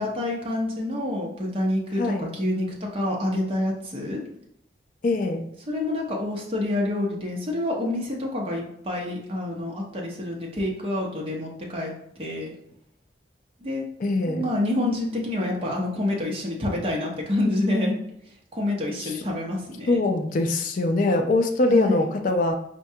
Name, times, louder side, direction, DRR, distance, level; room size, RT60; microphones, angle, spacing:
voice 1, 0.0-4.2 5.7-11.9 12.2-12.5 13.6-13.9 14.3-18.0 18.5-20.0 21.7-22.1, left 1 dB, 30° right, -2 dB, 0.6 m, -27 dB
voice 2, 5.0-5.5 14.0-14.5 19.0-19.2 19.9-22.6, left 2 dB, 45° left, 4 dB, 0.3 m, -23 dB
4.5 x 2.2 x 2.7 m, 0.71 s
head